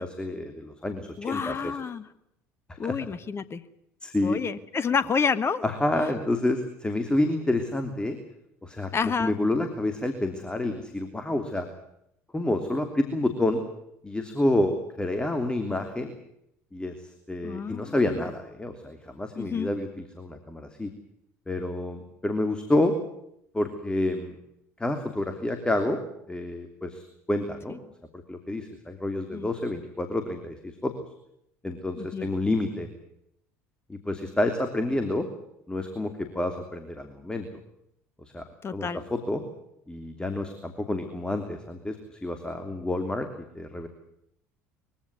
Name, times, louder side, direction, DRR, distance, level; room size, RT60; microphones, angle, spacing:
voice 1, 0.0-1.8 2.8-3.0 4.0-4.4 5.6-8.2 8.6-11.7 12.3-13.6 14.0-16.1 16.7-20.9 21.5-22.9 23.5-24.3 24.8-26.0 26.3-27.8 28.1-30.9 31.6-32.9 33.9-35.3 35.7-37.5 38.2-38.4 38.7-39.4 39.9-42.0 42.2-43.3 43.5-43.9, left 1 dB, 10° left, 6 dB, 3.0 m, -29 dB
voice 2, 1.2-2.0 2.8-3.6 4.2-5.7 8.9-9.3 17.4-18.3 19.3-19.7 27.7-27.8 29.3-29.5 32.0-32.3 38.6-39.0, left 6 dB, 30° left, 15 dB, 1.5 m, -29 dB
22.5 x 16.0 x 9.6 m, 0.77 s
figure-of-eight pair, 65°, 8 cm